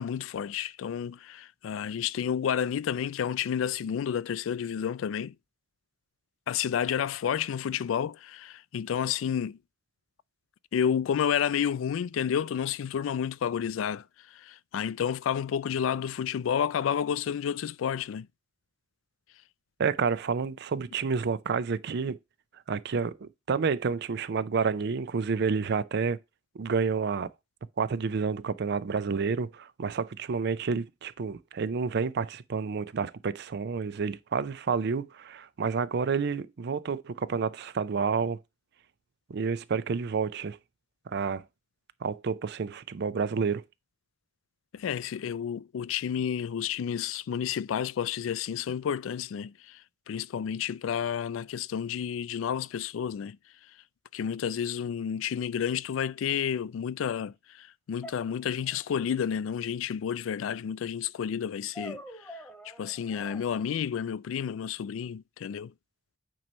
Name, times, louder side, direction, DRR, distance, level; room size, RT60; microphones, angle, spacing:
voice 1, 0.0-5.3 6.5-9.6 10.7-14.0 14.3-18.3 44.7-49.8 50.1-53.4 54.1-62.3 62.8-65.7, left 8 dB, 85° left, 0.3 m, -30 dB
voice 2, 19.8-22.2 22.7-26.2 26.6-27.3 27.8-38.4 39.3-40.6 41.1-41.4 42.0-43.6, right 5 dB, 60° right, 0.5 m, -29 dB
sound 1, 56.3-56.4 58.0-59.0 61.7-63.4, equal, 5° left, 1.3 m, -45 dB
9.0 x 3.1 x 5.3 m
head